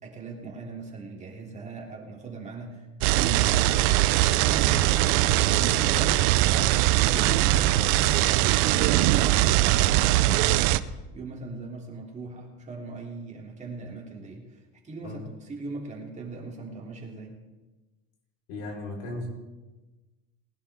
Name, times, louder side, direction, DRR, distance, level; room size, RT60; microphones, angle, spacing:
voice 1, 0.0-6.1 6.5-17.3, right 3 dB, 20° right, -1 dB, 3.1 m, -39 dB
sound 1, 3.0-10.8, right 15 dB, 75° right, 0.7 m, -21 dB
voice 2, 18.5-19.3, left 2 dB, 85° left, -1 dB, 4.6 m, -36 dB
20.5 x 11.0 x 3.7 m, 1.1 s
cardioid pair, 130°, 31 cm